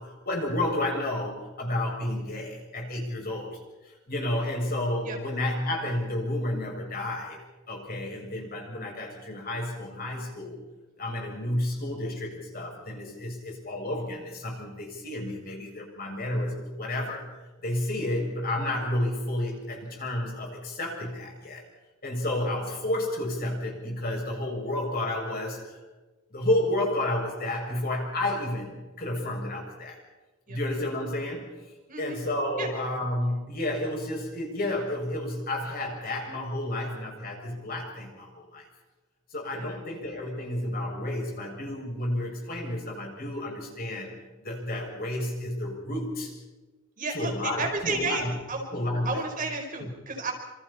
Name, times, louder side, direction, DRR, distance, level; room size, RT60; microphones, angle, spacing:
voice 1, 0.0-7.4 7.7-10.6 11.0-17.3 17.6-21.6 22.0-25.8 26.3-30.0 30.5-31.5 32.0-38.6 39.3-46.4 47.1-48.4 48.7-49.2 49.8-49.9, left 1 dB, 50° left, 0 dB, 7.0 m, -31 dB
voice 2, 47.0-48.2 48.5-48.6 49.0-50.3, right 3 dB, 45° right, 1 dB, 4.8 m, -31 dB
27.5 x 27.5 x 4.4 m, 1.2 s
head